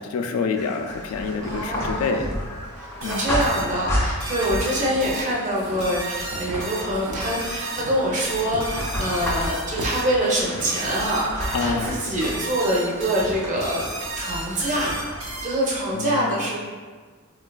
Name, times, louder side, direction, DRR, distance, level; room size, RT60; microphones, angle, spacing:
voice 1, 0.0-2.3 3.0-3.2 11.5-11.9 15.9-16.4, left 4 dB, 75° left, 6 dB, 0.3 m, -27 dB
sound 1, 0.5-15.9, left 1 dB, 10° left, 0.5 m, -33 dB
voice 2, 1.4-2.2 2.7-14.9 15.4-16.6, right 1 dB, 35° right, -4 dB, 0.6 m, -25 dB
sound 2, 3.0-15.8, right 2 dB, 65° right, 0.8 m, -34 dB
sound 3, 4.4-7.3 7.6-15.8, right 1 dB, 90° right, 0.5 m, -37 dB
4.1 x 2.3 x 2.2 m, 1.5 s
head